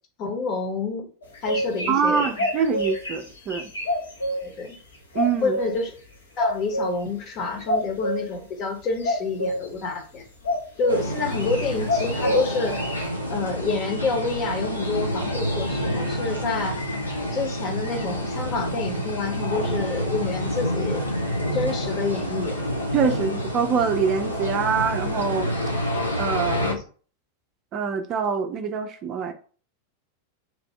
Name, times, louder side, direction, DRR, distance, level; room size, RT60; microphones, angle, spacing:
voice 1, 0.2-1.1 1.4-2.3 4.4-4.8 5.4-5.9 6.4-10.2 10.8-12.8 13.3-16.8 17.3-21.0 21.5-22.6 26.6-26.8, left 4 dB, 35° left, 3 dB, 1.1 m, -28 dB
sound 1, 1.2-4.4 5.1-5.8 6.4-6.9 7.7-8.2 9.0-9.7 10.4-11.0 11.3-13.1, equal, 70° left, 1.0 m, -26 dB
voice 2, 1.9-3.7 5.1-5.6 22.9-25.5 26.2-26.7 27.7-29.3, right 6 dB, 35° right, 6 dB, 0.5 m, -24 dB
sound 2, 10.9-26.7, equal, 85° left, 0.7 m, -28 dB
3.0 x 2.5 x 4.4 m, 0.41 s
figure-of-eight pair, 90°, 0 cm